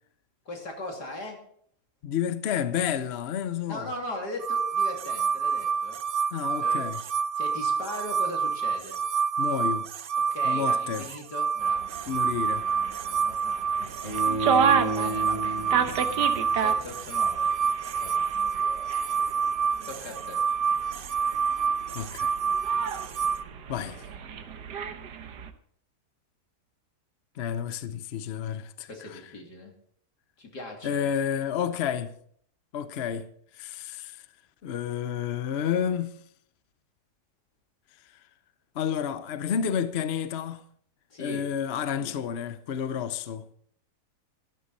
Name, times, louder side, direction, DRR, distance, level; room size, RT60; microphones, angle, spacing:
voice 1, 0.5-1.4 3.7-6.0 6.6-6.9 7.4-9.0 10.3-11.9 13.2-14.4 14.8-16.0 16.5-18.6 19.8-20.4 28.9-29.7 30.4-31.1 41.1-41.5 42.0-42.2, left 2 dB, 80° left, 3.4 m, -39 dB
voice 2, 2.0-3.9 6.3-7.0 9.4-9.9 10.4-11.1 12.1-12.7 21.9-22.4 23.7-24.0 27.4-29.2 30.8-32.1 32.7-33.3 33.5-34.2 34.6-36.1 38.7-40.6 41.2-43.5, left 8 dB, 55° left, 0.8 m, -30 dB
sound 1, 4.4-23.4, right 6 dB, 70° right, 0.5 m, -28 dB
sound 2, 11.6-25.5, right 7 dB, 90° right, 1.6 m, -32 dB
Bowed string instrument, 14.0-17.1, right 1 dB, 25° left, 1.3 m, -33 dB
13.5 x 13.0 x 4.1 m
omnidirectional pair, 1.7 m